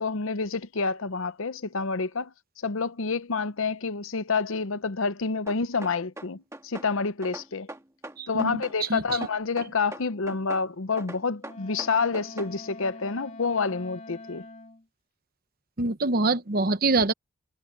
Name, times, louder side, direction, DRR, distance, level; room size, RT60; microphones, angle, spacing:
voice 1, 0.0-2.3 2.6-7.7 8.3-14.4, left 4 dB, 65° left, 0.8 m, -28 dB
sound 1, 5.5-6.9 7.2-8.8 9.1-10.7 11.0-12.5, right 1 dB, 15° right, 1.6 m, -41 dB
voice 2, 8.2-9.0 15.8-17.1, right 3 dB, 40° right, 0.9 m, -25 dB
Wind instrument woodwind instrument, 11.4-14.9, left 2 dB, 35° left, 3.6 m, -44 dB
head